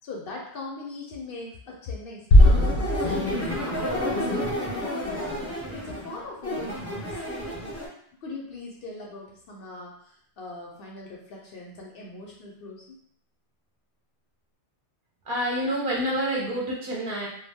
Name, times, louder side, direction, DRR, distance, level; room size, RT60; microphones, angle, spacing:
voice 1, 0.0-7.2 8.2-13.0, left 2 dB, 65° left, -2 dB, 0.7 m, -39 dB
sound 1, 2.3-4.1, left 1 dB, 85° left, 0.9 m, -19 dB
sound 2, 2.4-7.9, left 1 dB, 20° left, 0.5 m, -30 dB
voice 2, 15.3-17.3, equal, 55° right, -4 dB, 0.7 m, -27 dB
2.2 x 2.1 x 3.4 m, 0.65 s
omnidirectional pair, 1.2 m